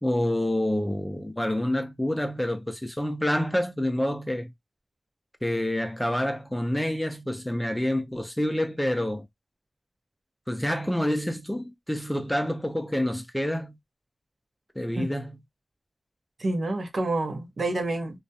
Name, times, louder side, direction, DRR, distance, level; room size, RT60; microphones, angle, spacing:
voice 1, 0.0-4.5 5.4-9.2 10.5-13.8 14.8-15.3, left 1 dB, 5° left, 0.4 m, -27 dB
voice 2, 16.4-18.2, right 2 dB, 70° right, 0.7 m, -28 dB
2.3 x 2.1 x 2.6 m
wide cardioid pair, 85°, 0 cm